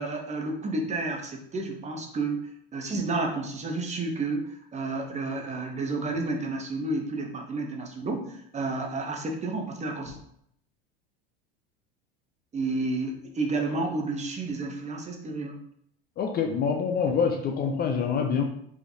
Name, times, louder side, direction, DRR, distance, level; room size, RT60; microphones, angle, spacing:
voice 1, 0.0-2.4 2.7-10.2 12.5-15.6, right 3 dB, 20° right, 3 dB, 0.8 m, -31 dB
voice 2, 16.2-18.4, left 6 dB, 30° left, 4 dB, 0.5 m, -26 dB
4.7 x 3.1 x 2.8 m, 0.69 s
supercardioid pair, 105°, 30 cm